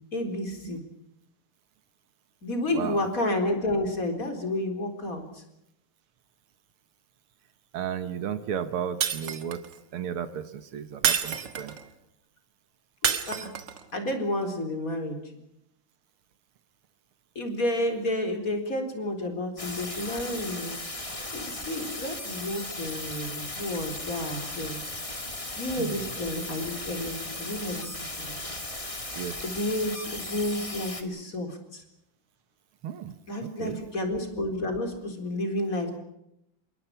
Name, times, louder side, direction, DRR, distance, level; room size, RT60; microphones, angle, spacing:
voice 1, 0.1-0.8 2.4-5.4 13.0-13.5 13.9-15.2 17.4-24.8 25.1-25.2 25.5-27.9 28.2-28.4 29.4-31.8 33.3-36.0, left 1 dB, 40° left, 5 dB, 4.5 m, -31 dB
voice 2, 7.7-9.6 9.9-11.7 25.8-26.0 29.2-29.3 32.8-33.2 33.4-33.8, right 8 dB, 85° right, 10 dB, 2.2 m, -34 dB
Shatter, 9.0-9.7 11.0-11.9 13.0-13.8, right 7 dB, 60° right, 2.0 m, -28 dB
sound 1, 19.6-31.0, left 2 dB, 15° left, 2.3 m, -37 dB
27.5 x 22.5 x 5.9 m, 0.82 s
omnidirectional pair, 2.3 m